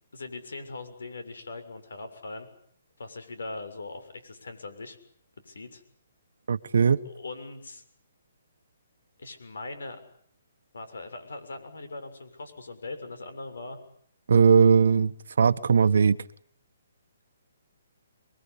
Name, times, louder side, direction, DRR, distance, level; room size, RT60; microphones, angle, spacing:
voice 1, 0.1-2.5 3.0-5.0 5.5-5.8 7.0-7.8 9.2-10.0 10.7-13.8, left 3 dB, 85° left, 10 dB, 6.9 m, -40 dB
voice 2, 6.5-7.0 14.3-16.2, right 6 dB, 75° right, 10 dB, 1.3 m, -19 dB
28.0 x 22.5 x 8.5 m, 0.64 s
hypercardioid pair, 155°, 0 cm